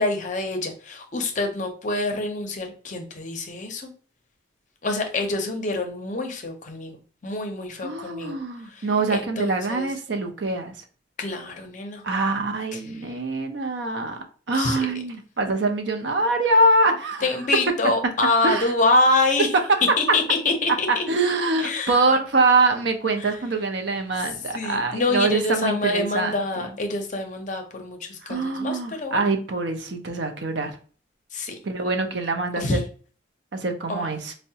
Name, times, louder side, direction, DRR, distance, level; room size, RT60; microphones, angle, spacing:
voice 1, 0.0-3.9 4.8-8.4 8.6-9.9 11.2-12.0 12.7-13.2 14.5-14.8 17.2-19.5 20.0-21.0 21.6-22.0 23.2-23.4 24.2-29.2 31.3-31.6 32.6-32.8 33.9-34.1, left 2 dB, 40° left, 4 dB, 0.6 m, -26 dB
voice 2, 7.8-10.7 12.0-14.2 14.5-17.2 18.4-18.7 21.1-26.3 28.2-30.7 31.6-32.8 33.5-34.3, right 2 dB, 60° right, 5 dB, 0.5 m, -24 dB
4.5 x 2.1 x 2.7 m, 0.41 s
head